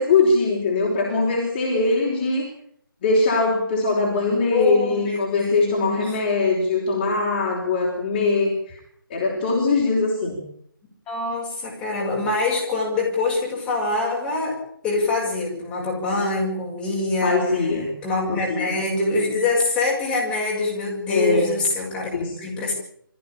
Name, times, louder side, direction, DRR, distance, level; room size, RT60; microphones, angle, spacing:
voice 1, 0.0-2.4 3.0-8.7 9.1-10.4 17.2-17.9 18.3-18.7 21.1-21.6 22.1-22.3, left 3 dB, 25° left, -1 dB, 5.1 m, -21 dB
voice 2, 4.5-6.2 11.1-14.6 14.8-17.6 18.0-22.1 22.4-22.7, left 3 dB, 10° left, -4 dB, 6.7 m, -24 dB
25.0 x 15.0 x 8.9 m, 0.68 s
figure-of-eight pair, 150°, 12 cm